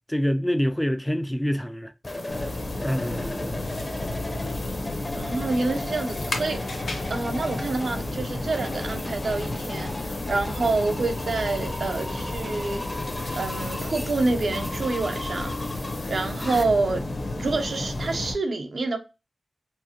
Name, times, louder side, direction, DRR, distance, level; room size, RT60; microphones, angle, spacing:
voice 1, 0.1-1.9 2.8-3.7, equal, 10° left, 0.3 m, -26 dB
sound 1, 2.0-16.6, left 2 dB, 35° left, 0.7 m, -37 dB
sound 2, 2.2-14.8, left 3 dB, 85° left, 1.0 m, -49 dB
sound 3, 2.3-18.3, left 2 dB, 60° left, 1.0 m, -32 dB
voice 2, 5.1-6.8 7.1-13.0 13.3-15.6 16.1-17.0 17.4-19.0, right 3 dB, 70° right, 0.7 m, -27 dB
4.6 x 2.1 x 2.9 m
wide cardioid pair, 75°, 0 cm